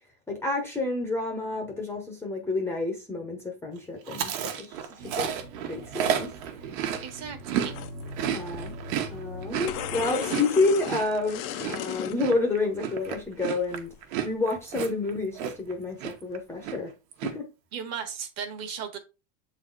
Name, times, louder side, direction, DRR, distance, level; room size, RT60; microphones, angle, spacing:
voice 1, 0.3-4.3 4.6-5.3 5.7-6.3 8.2-8.7 9.1-13.9 14.2-16.9 17.2-17.5, left 3 dB, 5° left, 0.7 m, -29 dB
Chewing mastication, 4.1-7.7 8.0-15.7 16.0-16.4 16.6-17.3, right 9 dB, 75° right, 1.4 m, -32 dB
sound 1, 5.0-10.1, right 1 dB, 60° right, 1.4 m, -42 dB
voice 2, 7.0-7.8 17.7-19.0, right 7 dB, 40° right, 1.4 m, -36 dB
sound 2, 7.7-8.7 9.0-9.1 9.4-12.2 12.8-13.3 13.7-14.0 14.3-14.4, left 13 dB, 35° left, 0.4 m, -35 dB
8.0 x 4.1 x 3.8 m
supercardioid pair, 170°, 41 cm